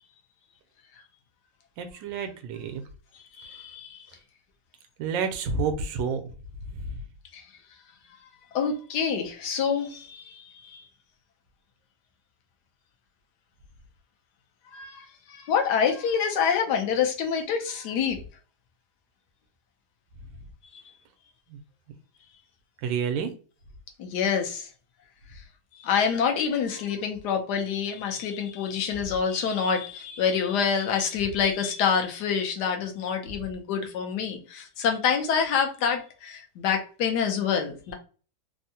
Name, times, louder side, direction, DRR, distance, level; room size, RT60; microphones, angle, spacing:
voice 1, 1.8-2.8 5.0-6.3 6.7-7.0 21.5-21.6 22.8-23.3, right 5 dB, 75° right, 1.2 m, -29 dB
voice 2, 3.1-4.1 7.3-7.4 8.5-10.8 14.7-18.2 20.7-20.8 24.0-24.7 25.4-25.5 25.8-37.9, left 7 dB, 70° left, 1.1 m, -27 dB
3.5 x 2.1 x 2.7 m
omnidirectional pair, 2.1 m